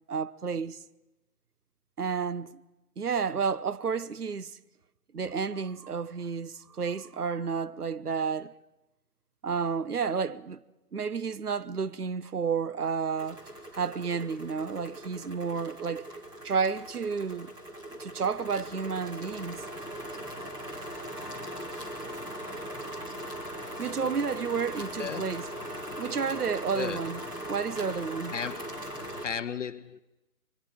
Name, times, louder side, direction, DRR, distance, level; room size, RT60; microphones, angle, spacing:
voice 1, 0.1-0.8 2.0-2.5 3.0-4.6 5.1-8.5 9.4-10.6 10.9-13.4 13.7-16.1 16.4-17.5 18.0-19.6 23.1-23.5 23.8-25.5 26.0-27.2 27.5-28.3, right 6 dB, 80° right, 1.1 m, -31 dB
sound 1, 13.2-29.3, equal, 10° right, 2.1 m, -40 dB
voice 2, 25.0-25.3 26.7-27.0 28.3-28.7 29.2-30.0, left 7 dB, 55° left, 0.9 m, -34 dB
26.5 x 24.0 x 5.0 m
figure-of-eight pair, 145°, 45 cm